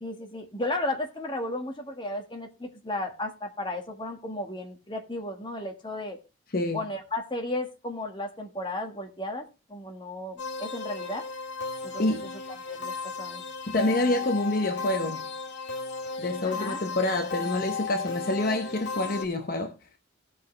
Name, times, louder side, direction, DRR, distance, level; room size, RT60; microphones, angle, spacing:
voice 1, 0.0-6.2 6.7-11.2 11.8-12.3 12.7-12.9 13.2-13.4 16.4-16.8, left 1 dB, 25° left, 1.5 m, -34 dB
voice 2, 6.5-6.8 12.0-12.3 13.7-15.2 16.2-19.7, left 2 dB, 45° left, 0.8 m, -27 dB
sound 1, 10.4-19.2, left 4 dB, 75° left, 1.7 m, -35 dB
17.0 x 6.2 x 3.2 m
head